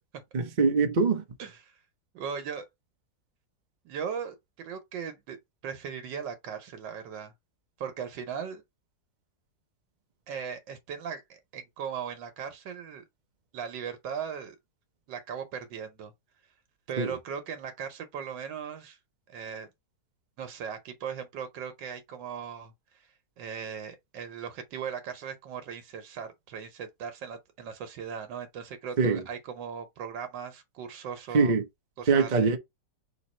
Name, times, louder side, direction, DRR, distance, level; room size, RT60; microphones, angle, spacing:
voice 1, 0.3-1.2 17.0-17.1 29.0-29.2 31.3-31.6 32.1-32.6, right 4 dB, 50° right, 0.5 m, -23 dB
voice 2, 1.4-1.8 2.1-2.7 3.8-5.4 5.6-7.3 7.8-8.6 10.3-13.0 13.5-14.6 15.1-16.1 16.9-19.0 19.3-19.7 20.4-22.7 23.4-31.5 32.0-32.5, right 7 dB, 90° right, 1.5 m, -38 dB
3.8 x 2.9 x 4.1 m
omnidirectional pair, 1.9 m